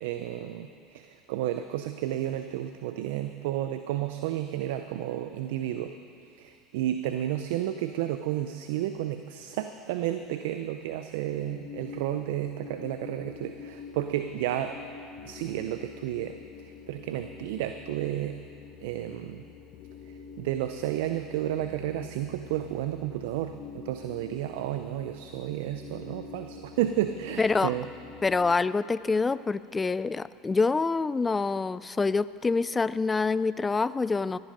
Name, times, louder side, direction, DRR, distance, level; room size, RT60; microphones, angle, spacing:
voice 1, 0.0-5.9 6.3-14.7 15.2-16.4 16.6-18.4 18.8-19.4 20.4-27.9, right 12 dB, 75° right, 8 dB, 0.5 m, -32 dB
sound 1, 11.3-28.6, left 6 dB, 55° left, 0.9 m, -46 dB
voice 2, 27.4-27.8 28.2-34.4, left 4 dB, 20° left, 17 dB, 0.3 m, -26 dB
15.5 x 10.5 x 5.4 m, 2.5 s
hypercardioid pair, 90°, 0 cm